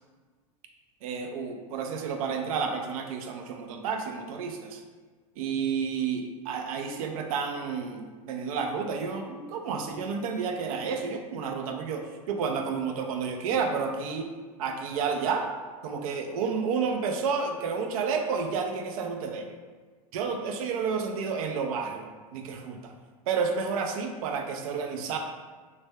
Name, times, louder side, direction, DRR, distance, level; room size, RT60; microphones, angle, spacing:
voice 1, 1.0-4.8 5.4-14.3 14.6-15.5 15.8-19.5 20.1-22.1 22.3-22.9 23.3-25.2, right 5 dB, 80° right, 4 dB, 0.5 m, -30 dB
3.3 x 2.1 x 3.3 m, 1.4 s
supercardioid pair, 130°, 18 cm